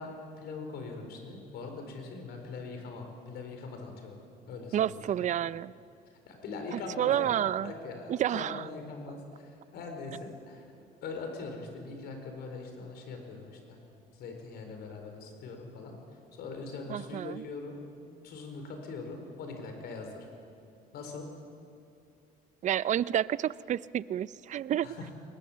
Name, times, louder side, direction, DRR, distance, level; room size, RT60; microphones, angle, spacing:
voice 1, 0.0-4.2 4.5-5.3 6.3-10.7 11.0-13.8 14.1-17.9 18.2-20.3 20.9-21.3 24.8-25.1, left 3 dB, 75° left, 4 dB, 4.5 m, -42 dB
voice 2, 4.7-5.7 6.7-7.7 8.1-8.6 16.9-17.4 22.6-24.9, right 11 dB, 45° right, 19 dB, 0.5 m, -30 dB
23.5 x 20.5 x 7.4 m, 2.6 s
cardioid pair, 110°, 17 cm